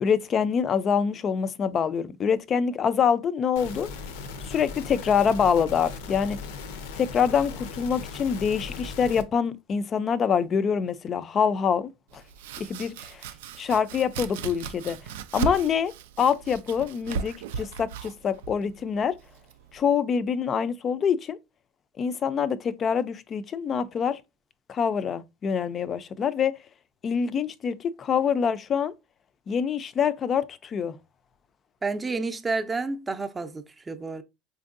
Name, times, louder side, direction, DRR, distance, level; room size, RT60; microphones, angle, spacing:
voice 1, 0.0-3.9 4.4-6.4 6.9-12.2 12.6-13.2 13.6-15.0 15.3-15.9 16.2-19.2 19.7-21.4 22.0-24.2 24.7-26.5 27.0-28.9 29.5-30.9, left 7 dB, 35° left, 0.4 m, -25 dB
sound 1, 3.6-9.2, left 4 dB, 85° left, 0.6 m, -38 dB
Domestic sounds home sounds, 12.1-19.8, right 7 dB, 90° right, 0.3 m, -37 dB
voice 2, 31.8-34.2, right 3 dB, 20° right, 0.5 m, -30 dB
4.4 x 2.6 x 2.5 m
supercardioid pair, 110°, 0 cm